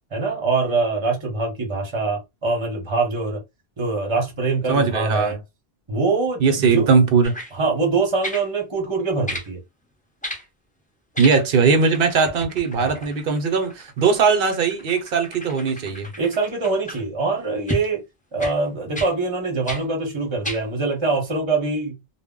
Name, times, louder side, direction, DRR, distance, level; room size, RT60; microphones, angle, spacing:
voice 1, 0.1-3.4 3.8-5.4 5.9-6.9 7.5-9.6 12.8-13.1 16.2-18.0 18.3-22.0, right 3 dB, 30° right, 0.8 m, -24 dB
voice 2, 4.7-5.4 6.4-7.4 11.2-16.1, right 5 dB, 65° right, 0.8 m, -19 dB
sound 1, 7.2-7.5 8.2-8.5 9.3-9.5 10.2-10.5 11.1-11.7 11.9-17.0 17.7-17.9 18.4-18.6 18.9-19.1 19.7-19.8 20.4-20.6 21.3-21.4, equal, 10° left, 0.6 m, -34 dB
2.1 x 2.0 x 3.6 m
omnidirectional pair, 1.0 m